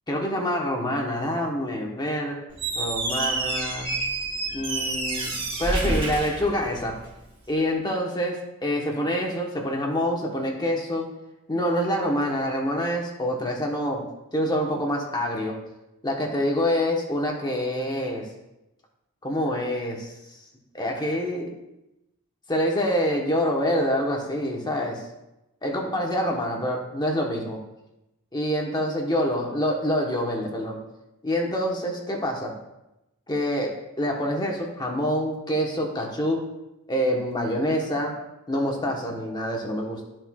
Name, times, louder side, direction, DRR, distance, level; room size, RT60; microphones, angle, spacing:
voice 1, 0.1-2.4 2.7-3.9 4.5-6.9 7.5-11.1 11.5-14.0 14.3-15.6 16.0-18.3 19.2-20.1 20.7-21.5 22.5-25.0 25.6-27.6 28.3-30.8 31.2-32.5 33.3-36.5 36.9-38.2 38.5-40.1, equal, 20° left, 0 dB, 1.1 m, -26 dB
Squeak, 2.5-7.2, right 2 dB, 25° right, 1.5 m, -28 dB
13.0 x 4.4 x 2.4 m, 0.94 s
head